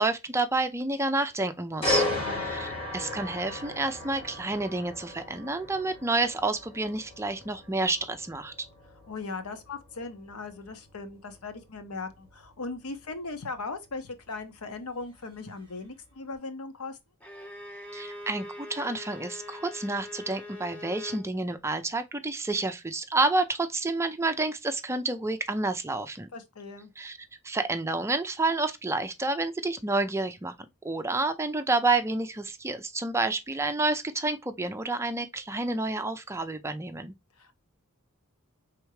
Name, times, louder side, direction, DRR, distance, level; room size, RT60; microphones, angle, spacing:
voice 1, 0.0-2.1 2.5-2.7 2.9-8.5 17.9-26.3 27.0-27.2 27.4-30.5 30.8-37.1, right 2 dB, 10° right, 0.5 m, -29 dB
sound 1, 1.8-15.7 16.1-16.3, left 2 dB, 25° left, 2.5 m, -36 dB
voice 2, 2.0-2.5 9.0-17.0 26.3-26.9 37.4-37.5, left 3 dB, 90° left, 0.9 m, -38 dB
Bowed string instrument, 17.2-21.3, left 2 dB, 5° left, 1.0 m, -42 dB
4.6 x 3.5 x 3.1 m
head